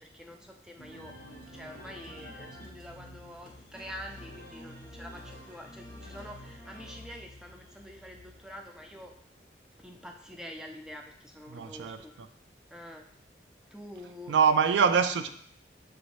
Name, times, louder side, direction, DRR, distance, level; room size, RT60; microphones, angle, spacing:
voice 1, 0.0-9.1 9.8-12.2 12.7-13.1 13.7-14.4, equal, 5° right, 2 dB, 0.3 m, -46 dB
sound 1, 0.8-9.4, left 1 dB, 80° left, 0.5 m, -51 dB
sound 2, 0.9-10.3, equal, 50° right, 0.8 m, -52 dB
voice 2, 11.5-12.3 14.3-15.3, right 6 dB, 90° right, 10 dB, 0.3 m, -25 dB
5.8 x 2.6 x 3.1 m, 0.64 s
head